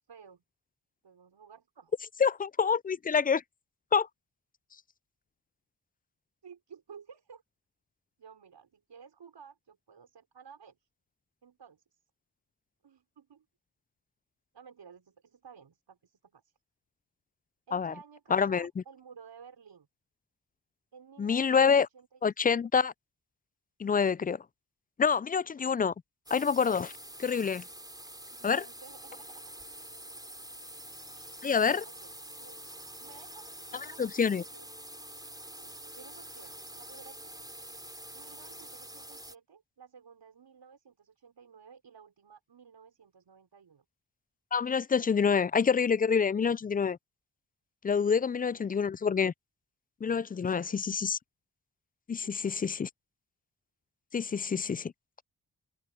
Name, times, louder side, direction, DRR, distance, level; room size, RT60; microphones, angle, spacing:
voice 1, 0.1-0.4 1.0-1.9 6.4-7.4 8.2-10.9 11.4-12.0 12.8-13.5 14.5-16.5 17.7-19.9 20.9-22.2 28.3-29.4 31.1-31.5 31.8-32.6 33.0-34.6 35.5-37.5 38.1-43.9 48.2-48.3 48.6-48.8 50.5-50.8 52.2-52.5, right 6 dB, 75° right, 5.5 m, -54 dB
voice 2, 2.2-3.4 3.9-4.1 17.7-17.9 18.3-18.7 21.2-21.9 22.2-22.9 23.8-24.4 25.0-25.9 26.3-26.9 27.2-27.6 28.4-28.6 31.4-31.8 33.7-34.4 44.5-47.0 47.8-49.3 50.0-51.2 52.1-52.9 54.1-54.9, left 6 dB, 25° left, 0.3 m, -27 dB
sound 1, 26.3-39.4, right 1 dB, 10° right, 3.9 m, -46 dB
cardioid pair, 50°, 42 cm